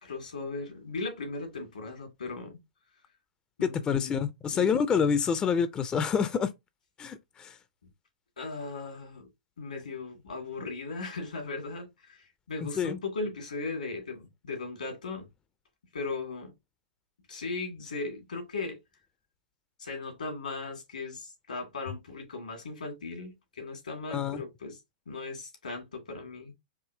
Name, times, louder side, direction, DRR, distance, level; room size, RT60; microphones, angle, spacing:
voice 1, 0.0-2.6 3.6-4.2 4.5-4.7 8.4-9.3 9.6-15.3 15.9-16.5 17.3-18.8 19.8-24.8 25.1-26.5, left 3 dB, 80° left, 2.3 m, -37 dB
voice 2, 3.6-6.5 7.0-7.6 12.6-12.9 24.1-24.4, left 6 dB, 20° left, 0.5 m, -27 dB
4.8 x 3.0 x 2.7 m
hypercardioid pair, 110°, 4 cm